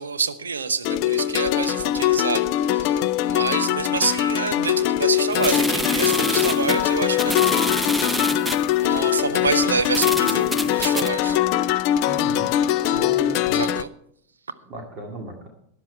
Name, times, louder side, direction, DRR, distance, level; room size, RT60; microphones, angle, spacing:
voice 1, 0.0-7.7 8.8-11.4 13.5-13.9, right 5 dB, 70° right, 12 dB, 0.9 m, -27 dB
sound 1, 0.8-13.8, left 12 dB, 45° left, 0.5 m, -22 dB
sound 2, 5.3-8.7 9.4-9.5 9.9-11.1, equal, ahead, 0.8 m, -27 dB
voice 2, 12.1-12.5 12.8-13.7 14.7-15.5, right 2 dB, 30° right, 2 dB, 2.2 m, -35 dB
13.0 x 10.5 x 4.5 m, 0.68 s
figure-of-eight pair, 90°, 0 cm